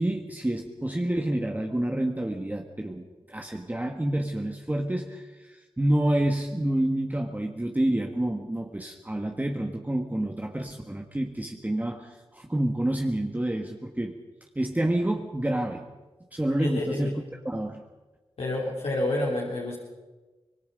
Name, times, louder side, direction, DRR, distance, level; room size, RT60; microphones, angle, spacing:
voice 1, 0.0-14.1 14.5-15.8 16.3-17.8, right 1 dB, 15° right, 2 dB, 1.6 m, -28 dB
voice 2, 16.6-17.1 18.4-19.7, left 2 dB, 75° left, -4 dB, 3.7 m, -29 dB
25.5 x 20.5 x 5.2 m, 1.2 s
cardioid pair, 65°, 10 cm